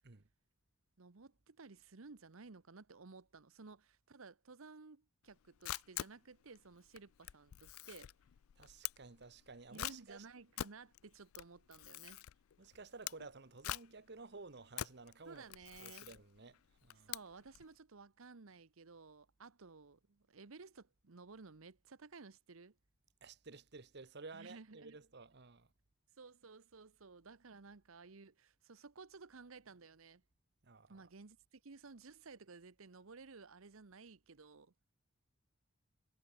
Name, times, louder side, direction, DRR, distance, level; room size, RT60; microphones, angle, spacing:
voice 1, 1.0-8.2 9.7-12.2 15.2-16.1 17.0-22.8 24.3-25.0 26.2-30.2 30.9-34.7, right 4 dB, 75° right, 0.9 m, -56 dB
Camera, 5.3-17.7, left 13 dB, 80° left, 0.4 m, -47 dB
voice 2, 8.6-10.3 12.6-15.5 15.8-17.1 23.2-25.7 30.6-31.1, right 3 dB, 50° right, 1.1 m, -54 dB
head